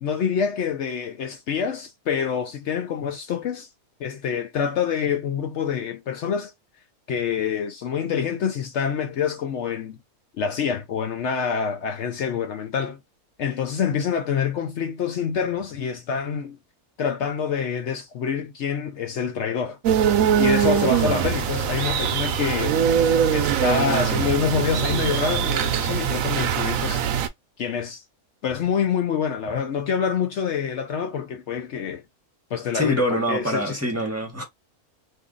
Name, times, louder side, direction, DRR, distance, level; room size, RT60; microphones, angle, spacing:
voice 1, 0.0-3.7 4.0-6.5 7.1-10.0 10.3-13.0 13.4-16.6 17.0-19.8 20.4-22.8 23.3-27.1 27.6-28.0 28.4-32.0 32.5-33.8, left 7 dB, 65° left, 0.7 m, -26 dB
sound 1, 19.8-27.3, right 8 dB, 75° right, 1.0 m, -22 dB
voice 2, 32.7-34.4, equal, 10° right, 1.0 m, -25 dB
2.7 x 2.6 x 3.7 m
omnidirectional pair, 1.5 m